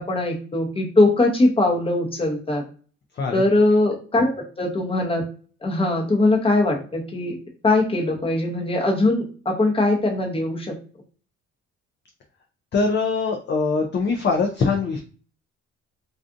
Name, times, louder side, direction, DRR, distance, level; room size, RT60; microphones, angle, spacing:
voice 1, 0.1-2.6 3.3-4.3 4.6-5.2 5.6-7.4 7.6-10.7, left 2 dB, 20° left, 1 dB, 0.8 m, -21 dB
voice 2, 12.7-15.0, left 4 dB, 35° left, 2 dB, 0.4 m, -22 dB
2.4 x 2.4 x 2.5 m, 0.40 s
cardioid pair, 90°, 30 cm